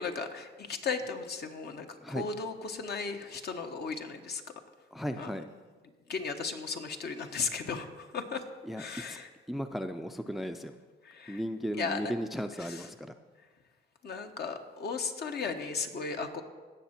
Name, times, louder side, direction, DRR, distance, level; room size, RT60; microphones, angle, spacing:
voice 1, 0.0-4.4 5.2-5.3 6.1-8.4 8.8-9.3 11.0-11.4 11.8-12.1 12.6-12.9 14.0-16.4, left 5 dB, 55° left, 5 dB, 1.1 m, -36 dB
voice 2, 4.9-5.5 8.6-8.8 9.1-9.2 9.5-10.7 11.3-13.1, equal, ahead, 8 dB, 0.5 m, -35 dB
17.5 x 6.5 x 4.4 m, 1.4 s
cardioid pair, 90°, 20 cm